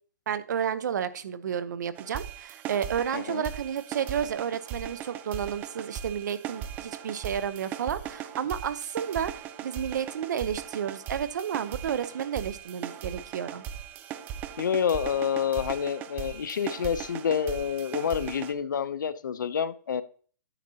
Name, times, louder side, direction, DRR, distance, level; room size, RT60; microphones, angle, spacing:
voice 1, 0.3-13.6, right 8 dB, 70° right, 15 dB, 0.8 m, -31 dB
sound 1, 2.0-18.5, right 10 dB, 15° right, 0.4 m, -39 dB
voice 2, 3.1-3.5 14.6-20.0, left 7 dB, 90° left, 13 dB, 0.7 m, -28 dB
10.0 x 7.4 x 2.8 m, 0.43 s
hypercardioid pair, 160°, 10 cm